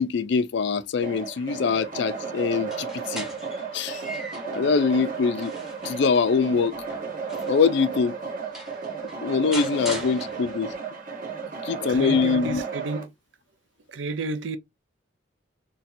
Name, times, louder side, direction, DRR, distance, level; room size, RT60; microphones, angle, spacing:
voice 1, 0.0-3.3 3.7-4.0 4.5-5.5 5.8-6.7 7.5-8.1 9.2-10.7 11.6-12.6, left 5 dB, 60° left, 0.4 m, -23 dB
sound 1, 1.0-13.0, right 5 dB, 45° right, 1.0 m, -33 dB
sound 2, 2.6-4.6 5.1-7.7 8.2-8.3 8.5-10.8, equal, ahead, 1.0 m, -40 dB
voice 2, 11.9-13.1 13.9-14.6, right 3 dB, 70° right, 0.5 m, -31 dB
4.1 x 2.2 x 2.6 m
head